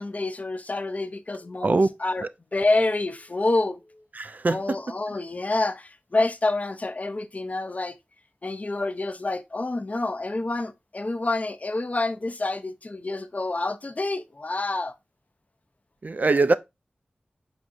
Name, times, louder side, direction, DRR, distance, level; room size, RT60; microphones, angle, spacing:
voice 1, 0.0-2.3 2.5-3.8 4.5-8.0 8.4-14.9, left 2 dB, 45° left, 0.5 m, -27 dB
voice 2, 4.1-4.8 16.0-16.5, right 3 dB, 55° right, 0.3 m, -22 dB
5.0 x 4.2 x 2.5 m
cardioid pair, 45°, 3 cm